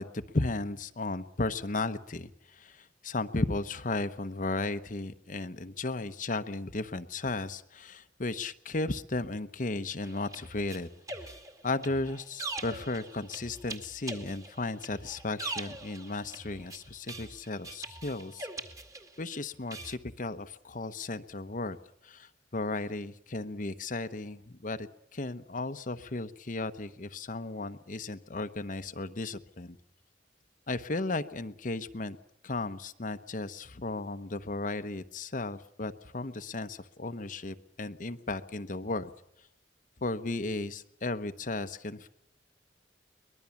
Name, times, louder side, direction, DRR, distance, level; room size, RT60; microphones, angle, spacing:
voice 1, 0.0-10.9 11.2-11.4 11.6-18.7 19.2-21.8 22.0-29.8 30.7-32.2 32.4-39.1 40.0-42.1, left 2 dB, 45° left, 9 dB, 0.9 m, -35 dB
sound 1, 10.0-19.3 19.7-19.9, right 3 dB, 20° right, 2.1 m, -42 dB
23.5 x 20.0 x 7.2 m, 0.77 s
head